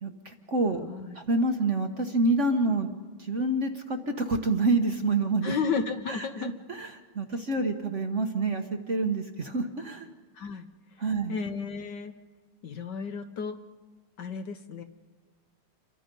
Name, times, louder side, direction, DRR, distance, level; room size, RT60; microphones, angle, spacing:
voice 1, 0.0-0.8 1.1-2.9 3.2-5.5 6.1-10.1 11.0-11.4, right 2 dB, 40° right, 5 dB, 1.2 m, -27 dB
voice 2, 0.8-1.2 5.4-6.5 10.3-10.7 11.3-12.1 12.6-13.6 14.2-14.8, left 5 dB, 60° left, 8 dB, 1.4 m, -33 dB
28.5 x 23.5 x 5.4 m, 1.4 s
omnidirectional pair, 2.4 m